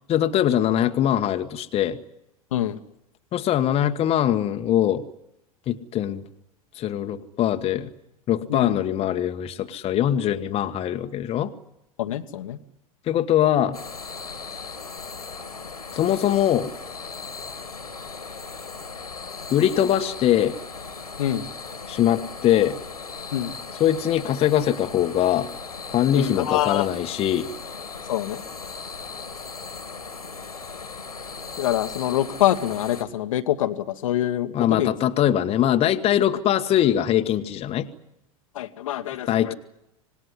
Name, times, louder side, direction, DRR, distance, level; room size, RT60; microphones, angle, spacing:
voice 1, 0.1-2.0 3.3-5.0 5.7-6.2 6.8-7.9 8.3-11.5 13.1-13.8 15.9-16.7 19.5-20.6 21.9-22.8 23.8-25.5 25.9-27.5 34.5-37.9 39.3-39.5, left 11 dB, 30° left, 7 dB, 1.3 m, -22 dB
voice 2, 12.0-12.6 21.2-21.5 23.3-23.5 26.1-26.9 28.1-28.4 31.6-34.9 38.5-39.5, left 12 dB, 60° left, 7 dB, 1.3 m, -25 dB
sound 1, 13.7-33.0, left 4 dB, 80° left, 2.2 m, -37 dB
26.5 x 19.0 x 9.9 m, 0.87 s
figure-of-eight pair, 85°, 19 cm